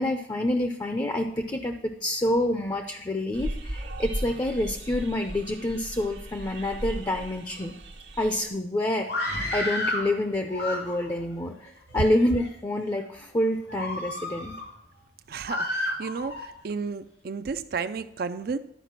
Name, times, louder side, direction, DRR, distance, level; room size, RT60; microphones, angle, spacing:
voice 1, 0.0-7.7 8.2-14.6, left 1 dB, 20° left, 5 dB, 0.6 m, -27 dB
sound 1, 3.3-8.5, right 1 dB, 90° right, 1.3 m, -37 dB
Screaming, 9.0-10.1 10.5-11.2 11.9-12.5 13.0-13.2 13.7-14.7 15.5-16.5, left 1 dB, 75° left, 2.7 m, -31 dB
voice 2, 15.3-18.6, right 5 dB, 55° right, 10 dB, 0.4 m, -32 dB
11.0 x 5.0 x 5.8 m, 0.78 s
head